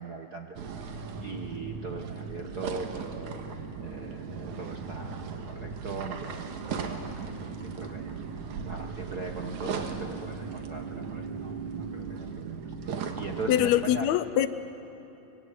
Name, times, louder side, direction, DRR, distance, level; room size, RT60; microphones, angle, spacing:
voice 1, 0.0-14.1, right 4 dB, 55° right, 3 dB, 1.0 m, -40 dB
sound 1, 0.6-13.7, right 5 dB, 80° right, 2.9 m, -37 dB
voice 2, 13.5-14.5, left 11 dB, 75° left, 13 dB, 2.0 m, -23 dB
25.0 x 23.0 x 8.3 m, 3.0 s
omnidirectional pair, 3.3 m